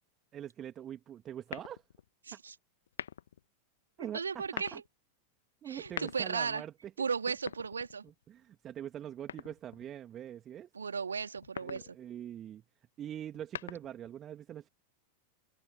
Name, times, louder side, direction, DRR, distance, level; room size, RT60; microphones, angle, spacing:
voice 1, 0.3-1.8 2.3-2.4 4.0-4.8 5.6-7.1 8.0-10.7 11.6-12.6 13.0-14.7, right 10 dB, 30° right, 2.4 m, -44 dB
sound 1, 1.5-2.1 2.9-3.4 4.3-4.9 5.7-6.5 7.3-8.2 9.3-9.9 11.3-11.9 13.2-14.1, left 9 dB, 65° left, 1.3 m, -44 dB
voice 2, 2.2-2.6 4.1-4.8 5.7-6.6 7.0-8.0 10.7-12.0, right 5 dB, 75° right, 2.1 m, -35 dB
figure-of-eight pair, 90°, 0 cm